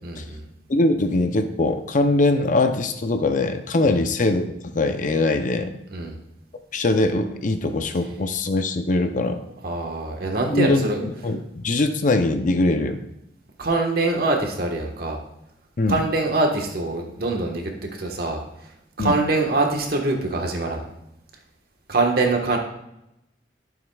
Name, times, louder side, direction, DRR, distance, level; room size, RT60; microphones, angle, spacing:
voice 1, 0.0-0.4 3.8-4.0 5.9-6.2 9.6-11.0 13.6-15.2 15.9-17.7 18.0-18.7 19.0-20.9 21.9-22.6, right 2 dB, 60° right, 2 dB, 1.4 m, -24 dB
voice 2, 0.7-5.8 6.7-9.4 10.5-13.0 15.8-16.0 19.0-19.2, left 2 dB, 50° left, 7 dB, 0.6 m, -22 dB
12.5 x 7.2 x 2.3 m, 0.85 s
head